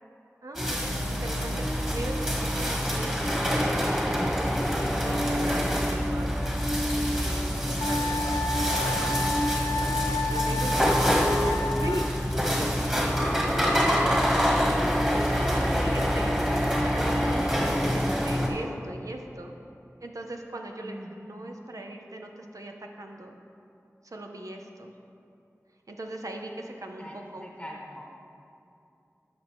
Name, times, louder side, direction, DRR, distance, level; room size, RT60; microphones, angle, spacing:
voice 1, 0.4-0.9 1.2-3.2 3.4-4.6 5.0-9.4 10.3-15.0 15.5-19.6 20.0-23.4 24.0-24.9 25.9-27.5, right 1 dB, 85° right, 2 dB, 0.7 m, -40 dB
sound 1, 0.6-18.5, equal, 10° right, 1.4 m, -26 dB
Wind instrument woodwind instrument, 7.8-12.1, left 3 dB, 70° left, 0.5 m, -31 dB
voice 2, 10.5-11.1 15.3-15.8 20.8-21.3 27.0-28.1, equal, 20° left, -2 dB, 0.9 m, -44 dB
12.0 x 6.0 x 3.5 m, 2.6 s
wide cardioid pair, 40°, 6 cm